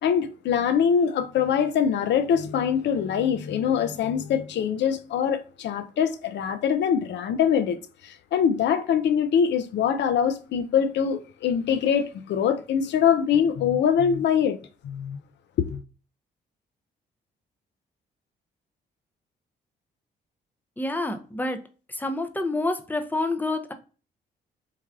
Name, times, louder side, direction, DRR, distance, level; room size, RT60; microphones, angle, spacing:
voice 1, 0.0-14.6 14.8-15.2 15.6-15.8, left 8 dB, 60° left, 0.4 m, -23 dB
voice 2, 20.8-21.6 21.9-23.7, left 2 dB, 10° left, 0.5 m, -28 dB
3.2 x 2.3 x 2.3 m
hypercardioid pair, 50°, 21 cm